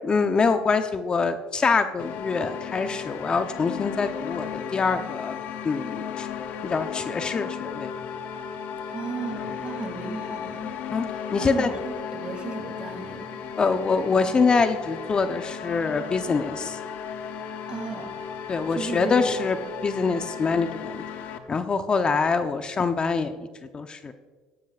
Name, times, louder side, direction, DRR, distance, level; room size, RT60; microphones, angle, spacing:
voice 1, 0.0-5.4 5.6-6.3 6.6-7.9 10.9-11.1 11.3-11.7 13.6-16.8 18.5-19.6 19.8-21.0 21.5-23.3 23.7-24.1, left 4 dB, 30° left, 9 dB, 0.8 m, -24 dB
sound 1, 2.0-21.4, left 7 dB, 65° left, 1.0 m, -35 dB
voice 2, 8.9-13.4 17.7-18.2 18.7-19.2, right 5 dB, 35° right, 4 dB, 2.7 m, -35 dB
16.0 x 14.0 x 2.5 m, 1.4 s
hypercardioid pair, 75°, 3 cm